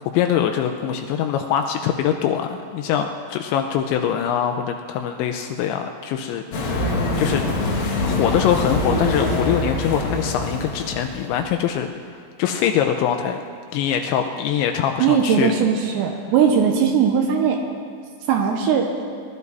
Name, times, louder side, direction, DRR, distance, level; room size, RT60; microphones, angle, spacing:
voice 1, 0.1-7.4 8.0-11.9 12.4-13.4 13.7-15.5, left 9 dB, 85° left, 5 dB, 2.6 m, -23 dB
sound 1, 6.5-11.5, left 2 dB, 55° left, 2.9 m, -24 dB
voice 2, 15.0-17.6 18.3-18.9, right 7 dB, 75° right, 3 dB, 2.7 m, -19 dB
20.5 x 12.0 x 4.1 m, 2.1 s
omnidirectional pair, 5.9 m